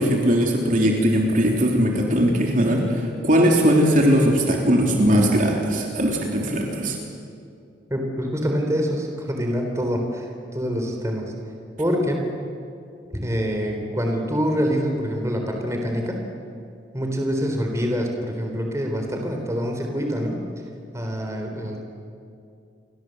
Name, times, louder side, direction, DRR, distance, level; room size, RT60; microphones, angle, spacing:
voice 1, 0.0-7.0, equal, 45° right, 0 dB, 3.4 m, -19 dB
voice 2, 7.9-11.3 11.8-12.3 13.1-16.2 16.9-20.4 20.9-21.8, equal, 15° right, 2 dB, 4.0 m, -25 dB
29.5 x 23.5 x 7.9 m, 2.4 s
head